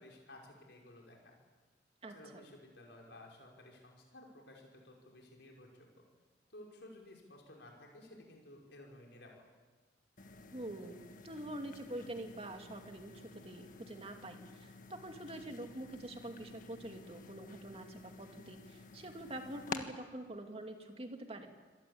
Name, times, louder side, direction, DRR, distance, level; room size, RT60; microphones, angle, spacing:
voice 1, 0.0-1.4 2.1-5.9 6.5-9.4, left 1 dB, 75° left, -1 dB, 5.5 m, -55 dB
voice 2, 2.0-2.4 10.5-21.5, right 1 dB, 35° right, 4 dB, 2.5 m, -46 dB
sound 1, 10.2-19.8, left 4 dB, 50° left, 1.6 m, -51 dB
26.0 x 18.5 x 8.7 m, 1.3 s
head